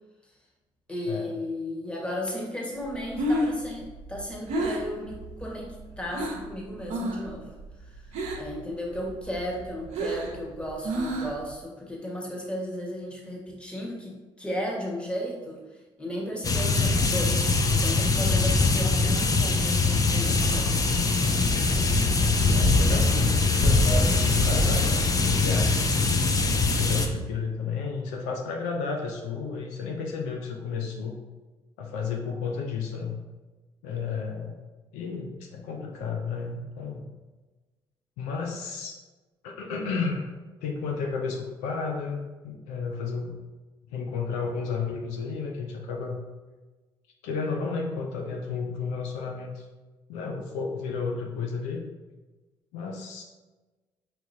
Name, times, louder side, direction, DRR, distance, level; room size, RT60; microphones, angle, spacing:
voice 1, 0.9-8.1 8.4-17.4 17.7-20.7, left 1 dB, 10° left, -3 dB, 1.4 m, -35 dB
Breathing, 2.9-6.5 6.9-7.3 7.6-8.6 9.0-11.5, right 1 dB, 65° right, 0.7 m, -30 dB
sound 1, 16.4-27.1, left 3 dB, 30° left, 0.6 m, -22 dB
voice 2, 16.6-17.0 22.5-26.1 26.7-31.2 31.8-33.2 33.8-34.6 34.9-37.1 38.2-39.0 39.4-40.3 40.6-43.4 43.9-46.2 47.2-49.7 50.1-51.8 52.7-53.2, left 5 dB, 75° left, 1 dB, 0.5 m, -32 dB
4.7 x 2.9 x 2.7 m, 1.2 s
hypercardioid pair, 55°, 12 cm